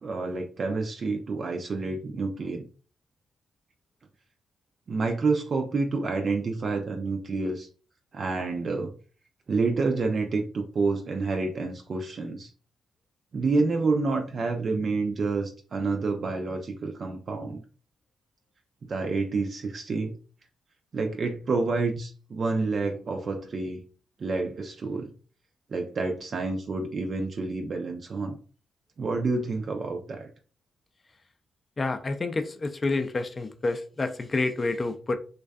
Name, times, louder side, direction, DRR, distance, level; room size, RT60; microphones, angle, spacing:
voice 1, 0.0-2.6 4.9-7.7 8.1-8.9 9.5-12.5 13.3-17.6 18.9-20.2 20.9-23.8 24.2-25.1 25.7-28.4 29.0-30.3, right 3 dB, 50° right, 3 dB, 0.3 m, -28 dB
voice 2, 31.8-35.2, left 3 dB, 35° left, 8 dB, 0.3 m, -28 dB
2.5 x 2.2 x 2.2 m, 0.39 s
cardioid pair, 80°, 0 cm